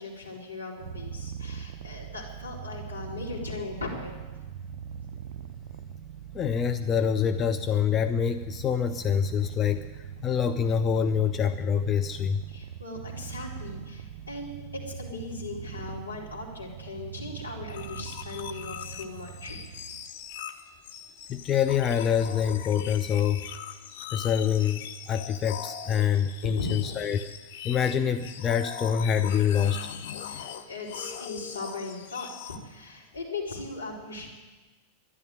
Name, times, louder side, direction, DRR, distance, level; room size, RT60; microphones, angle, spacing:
voice 1, 0.0-4.2 12.5-19.8 26.4-26.8 30.2-34.3, left 3 dB, 80° left, -4 dB, 4.1 m, -38 dB
Purr, 0.8-20.1, right 7 dB, 55° right, 0.6 m, -41 dB
voice 2, 6.3-12.4 21.3-23.5 24.1-27.3 27.6-29.8, left 8 dB, 25° left, 9 dB, 0.6 m, -26 dB
sound 1, 17.7-32.6, left 9 dB, 55° left, 1.1 m, -41 dB
12.5 x 11.0 x 9.4 m, 1.2 s
figure-of-eight pair, 90°, 0 cm